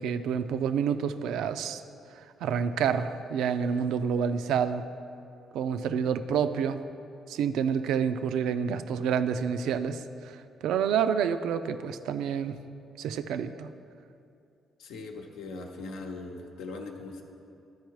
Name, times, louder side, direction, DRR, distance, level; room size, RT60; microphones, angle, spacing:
voice 1, 0.0-1.8 2.1-4.8 5.5-6.8 7.3-12.6 13.0-13.7, right 7 dB, 85° right, 10 dB, 0.3 m, -28 dB
voice 2, 14.8-17.2, left 3 dB, 90° left, 3 dB, 0.8 m, -40 dB
13.0 x 4.7 x 4.6 m, 2.6 s
cardioid pair, 90°, 0 cm